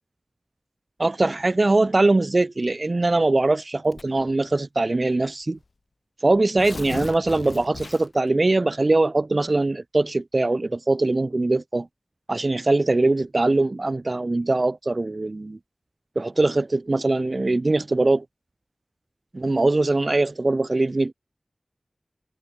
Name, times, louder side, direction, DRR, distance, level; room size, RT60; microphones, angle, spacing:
voice 1, 1.0-5.6 6.2-11.9 12.3-15.6 16.2-18.2 19.3-21.1, right 2 dB, 55° right, 3.7 m, -22 dB
Tearing, 3.9-4.3 5.2-5.3 5.6-5.7 6.3-8.3, left 3 dB, 80° left, 3.1 m, -37 dB
wide cardioid pair, 40°, 0 cm